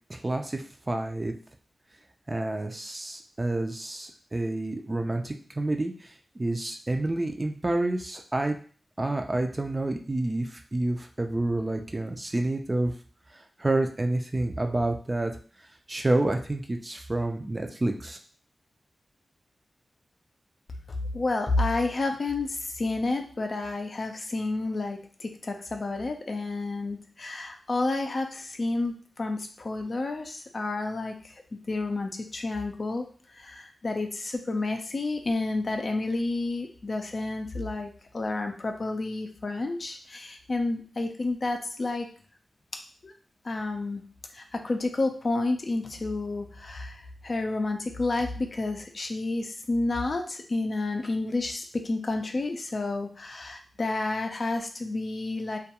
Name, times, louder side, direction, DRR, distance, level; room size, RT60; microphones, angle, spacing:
voice 1, 0.1-1.3 2.3-6.1 6.4-8.6 9.0-12.9 13.6-15.3 15.9-18.2, right 2 dB, 30° right, 4 dB, 0.4 m, -29 dB
voice 2, 20.9-31.3 31.7-42.1 43.0-43.1 43.4-44.1 44.3-55.6, left 2 dB, 55° left, 4 dB, 0.4 m, -30 dB
2.3 x 2.2 x 2.8 m, 0.41 s
cardioid pair, 55°, 0 cm